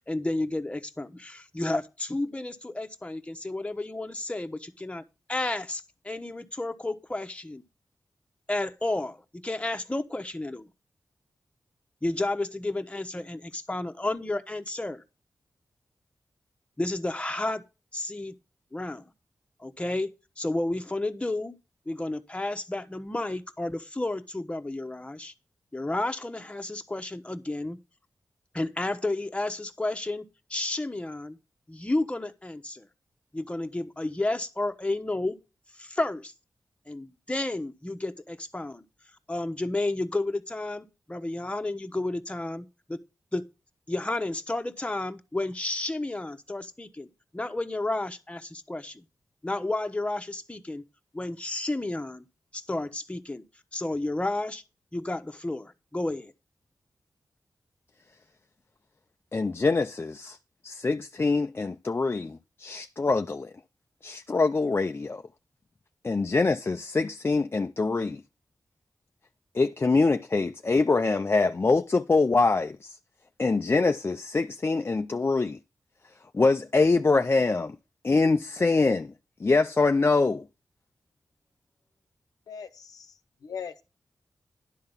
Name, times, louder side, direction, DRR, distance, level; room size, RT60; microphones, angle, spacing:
voice 1, 0.1-5.0 5.3-7.6 8.5-10.7 12.0-15.0 16.8-17.6 17.9-18.3 18.7-19.0 19.6-21.6 21.9-25.3 25.7-27.8 28.5-30.2 30.5-31.4 31.7-32.9 33.3-35.4 35.7-36.3 36.9-38.8 39.3-43.0 43.3-43.4 43.9-49.0 49.4-50.8 51.1-52.2 52.5-53.4 53.7-54.6 54.9-56.3, left 2 dB, 20° left, 1.1 m, -31 dB
voice 2, 59.3-60.4 60.6-63.5 64.0-65.2 66.0-68.2 69.5-73.0 73.4-75.6 76.3-77.8 78.0-79.1 79.4-80.4, left 3 dB, 40° left, 0.5 m, -24 dB
voice 3, 82.5-83.1 83.4-83.8, left 7 dB, 85° left, 0.9 m, -39 dB
11.0 x 3.7 x 7.2 m
cardioid pair, 50°, 6 cm